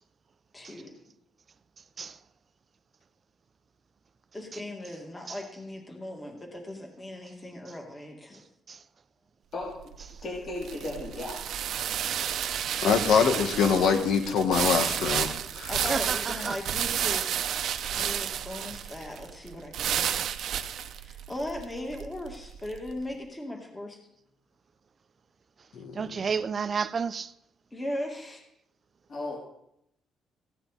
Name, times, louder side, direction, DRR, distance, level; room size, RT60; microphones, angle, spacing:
voice 1, 0.5-1.0 4.3-8.4 15.7-17.6 17.9-20.1 21.0-24.0 27.7-28.4, left 1 dB, 15° left, 2.0 m, -38 dB
voice 2, 9.5-9.9 10.2-11.4 29.1-29.4, left 2 dB, 40° left, 3.7 m, -35 dB
sound 1, 9.6-22.9, right 9 dB, 65° right, 0.8 m, -31 dB
voice 3, 12.8-15.7 25.7-26.0, left 6 dB, 75° left, 1.8 m, -24 dB
voice 4, 15.9-16.6 25.9-27.3, right 6 dB, 35° right, 0.5 m, -31 dB
15.0 x 9.9 x 4.2 m
cardioid pair, 130°, 0 cm